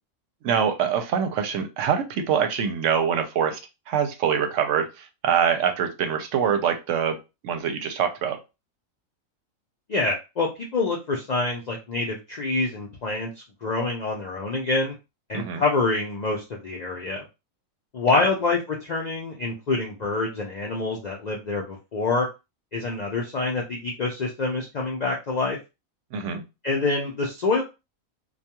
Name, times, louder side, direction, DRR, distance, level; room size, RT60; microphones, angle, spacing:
voice 1, 0.4-3.6 3.9-4.9 5.2-7.2 7.4-8.4 15.3-15.6 18.1-18.2 26.1-26.4, right 7 dB, 70° right, 6 dB, 0.9 m, -24 dB
voice 2, 9.9-14.9 15.3-17.2 17.9-22.3 22.7-25.6 26.6-27.6, left 3 dB, 75° left, -1 dB, 0.3 m, -26 dB
2.3 x 2.3 x 2.8 m, 0.26 s
omnidirectional pair, 1.4 m